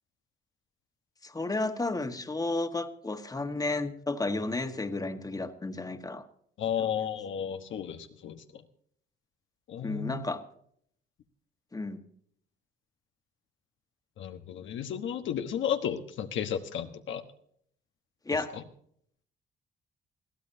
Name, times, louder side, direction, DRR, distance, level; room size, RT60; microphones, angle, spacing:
voice 1, 1.2-6.2 6.8-6.9 9.8-10.4 11.7-12.0 18.2-18.5, left 2 dB, 20° left, 7 dB, 1.6 m, -32 dB
voice 2, 6.6-8.4 9.7-10.2 14.2-17.2 18.5-18.6, left 9 dB, 75° left, 6 dB, 1.3 m, -33 dB
21.5 x 14.0 x 2.8 m, 0.64 s
cardioid pair, 90°, 20 cm